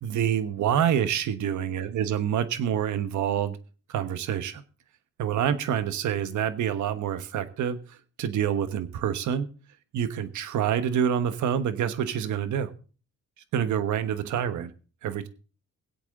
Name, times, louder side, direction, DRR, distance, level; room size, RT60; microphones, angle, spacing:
voice 1, 0.0-3.6 3.9-4.6 5.2-7.8 8.2-9.5 9.9-12.7 13.5-14.7 15.0-15.3, right 9 dB, 75° right, 1.2 m, -27 dB
21.0 x 8.3 x 3.6 m
cardioid pair, 90°, 30 cm